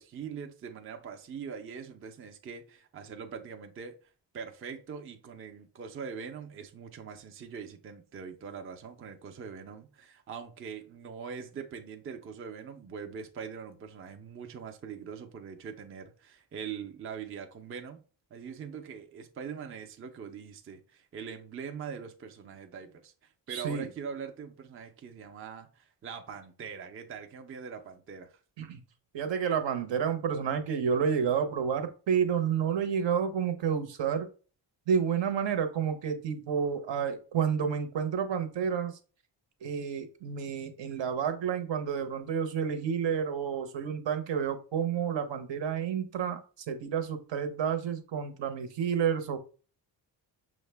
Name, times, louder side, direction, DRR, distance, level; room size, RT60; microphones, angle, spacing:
voice 1, 0.0-3.9 4.3-18.0 18.3-28.4, right 6 dB, 30° right, 0.4 m, -42 dB
voice 2, 23.5-23.9 28.6-28.8 29.1-34.3 34.9-38.9 39.6-46.4 46.7-49.4, right 7 dB, 75° right, 0.8 m, -30 dB
6.2 x 2.1 x 3.3 m
wide cardioid pair, 180°, 45 cm